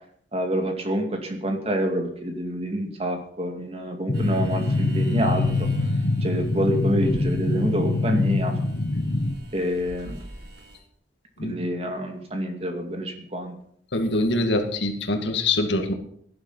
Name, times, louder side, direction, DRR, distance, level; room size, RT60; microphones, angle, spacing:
voice 1, 0.3-5.7 6.2-8.5 9.5-10.2 11.4-13.5, equal, 35° right, 4 dB, 2.4 m, -27 dB
sound 1, 4.1-9.3, left 2 dB, 60° left, 1.3 m, -24 dB
sound 2, 4.1-10.8, right 1 dB, 65° right, 3.4 m, -43 dB
voice 2, 13.9-15.9, left 2 dB, 80° left, 5 dB, 2.2 m, -24 dB
17.0 x 11.0 x 5.6 m, 0.65 s
head